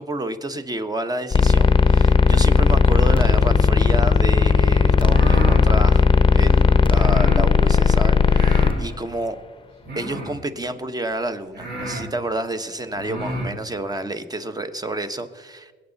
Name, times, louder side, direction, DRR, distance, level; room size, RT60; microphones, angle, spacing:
voice 1, 0.0-6.1 6.3-9.4 10.0-15.7, right 1 dB, 20° right, 9 dB, 1.1 m, -29 dB
sound 1, 1.3-8.7, left 5 dB, 25° left, 0.8 m, -16 dB
sound 2, 4.9-5.7 6.9-7.4 8.3-8.8 9.8-10.4 11.1-11.2 11.5-12.1 12.9-13.5, right 1 dB, 55° right, 4.7 m, -30 dB
21.0 x 9.0 x 4.0 m, 1.5 s
cardioid pair, 90°, 20 cm